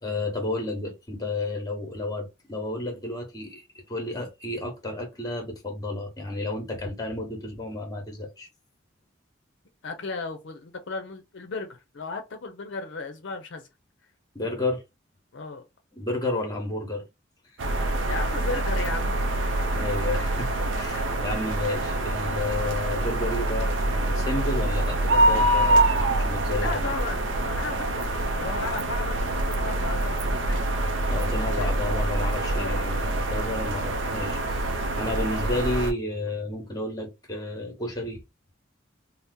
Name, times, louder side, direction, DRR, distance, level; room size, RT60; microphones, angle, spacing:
voice 1, 0.0-8.5 14.3-14.8 15.9-17.0 19.5-26.8 31.1-34.7 34.9-38.2, left 2 dB, 20° left, 0.9 m, -31 dB
voice 2, 9.8-13.7 15.3-15.7 18.1-19.2 20.9-21.0 26.5-30.7 31.2-31.8 32.5-32.8, left 3 dB, 65° left, 0.5 m, -35 dB
sound 1, 17.6-35.9, right 1 dB, 70° right, 0.5 m, -25 dB
2.7 x 2.0 x 3.5 m
head